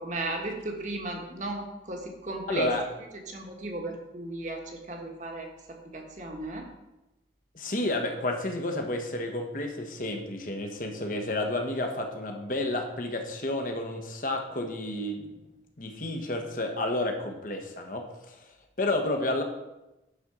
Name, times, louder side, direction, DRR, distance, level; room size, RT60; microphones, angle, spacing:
voice 1, 0.0-2.7 3.3-5.5 5.9-6.7, right 2 dB, 40° right, 2 dB, 1.5 m, -35 dB
voice 2, 2.5-2.8 7.5-15.3 15.8-18.4 18.8-19.4, left 2 dB, 50° left, 3 dB, 1.2 m, -31 dB
10.0 x 4.4 x 6.3 m, 0.97 s
head